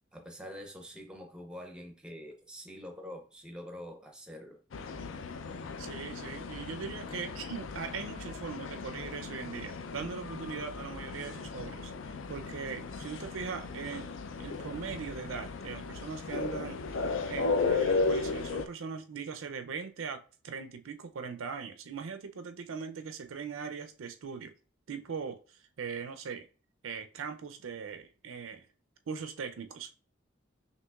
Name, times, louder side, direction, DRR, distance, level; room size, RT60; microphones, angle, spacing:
voice 1, 0.1-4.6, equal, 5° right, 0.5 m, -45 dB
sound 1, 4.7-18.7, left 4 dB, 75° left, 0.4 m, -35 dB
voice 2, 5.8-14.1 14.4-24.5 24.9-26.5 26.8-28.7 29.1-29.9, right 5 dB, 80° right, 0.5 m, -40 dB
5.9 x 2.9 x 2.3 m
head